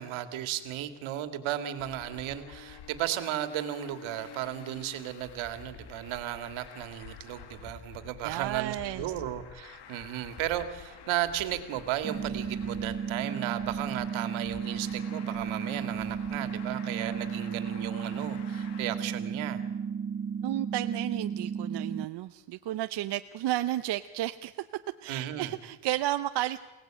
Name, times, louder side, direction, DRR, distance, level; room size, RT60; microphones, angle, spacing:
voice 1, 0.0-19.6 25.1-25.5, right 12 dB, 75° right, 10 dB, 2.5 m, -35 dB
Traffic noise roadway noise, 1.8-19.0, left 8 dB, 55° left, 2.2 m, -49 dB
voice 2, 8.2-9.1 20.4-24.7 25.0-26.6, right 14 dB, 55° right, 9 dB, 0.9 m, -32 dB
sound 1, 12.0-22.1, right 6 dB, 25° right, 1.1 m, -34 dB
28.5 x 18.0 x 9.0 m, 1.2 s
cardioid pair, 120°, 48 cm